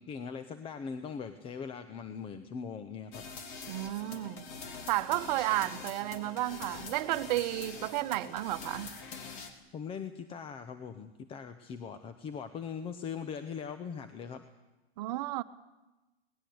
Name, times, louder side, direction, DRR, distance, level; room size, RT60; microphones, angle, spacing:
voice 1, 0.0-3.2 9.7-14.4, left 6 dB, 15° left, 10 dB, 0.9 m, -40 dB
sound 1, 3.1-9.5, left 5 dB, 45° left, 3.4 m, -44 dB
voice 2, 3.7-4.5 4.9-8.9 15.0-15.4, right 16 dB, 40° right, 11 dB, 1.2 m, -32 dB
22.5 x 19.0 x 8.0 m, 1.1 s
hypercardioid pair, 135°, 32 cm